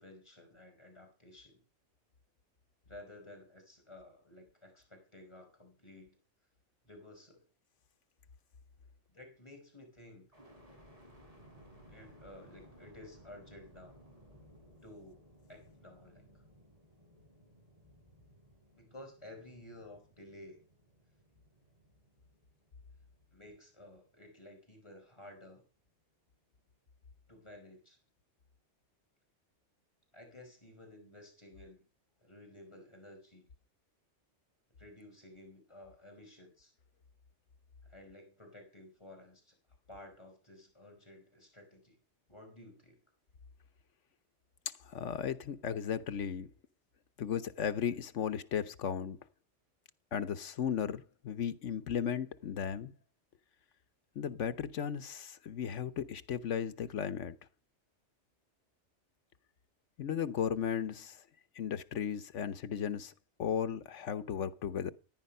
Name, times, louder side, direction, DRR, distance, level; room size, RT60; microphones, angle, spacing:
voice 1, 0.0-1.6 2.8-6.2 6.8-7.5 9.1-10.3 11.9-14.0 14.8-16.3 18.7-20.6 23.3-25.6 27.3-28.0 30.1-31.8 32.2-33.4 34.8-36.7 37.8-39.5 39.9-42.0 42.3-43.0, left 1 dB, 25° left, 5.0 m, -54 dB
sound 1, 10.3-24.3 24.8-25.6, equal, 30° right, 5.8 m, -60 dB
voice 2, 44.8-46.5 47.2-49.2 50.1-52.9 54.1-57.4 60.0-61.2 61.5-63.1 63.4-64.9, left 8 dB, 90° left, 1.3 m, -35 dB
17.0 x 10.5 x 5.5 m
omnidirectional pair, 1.2 m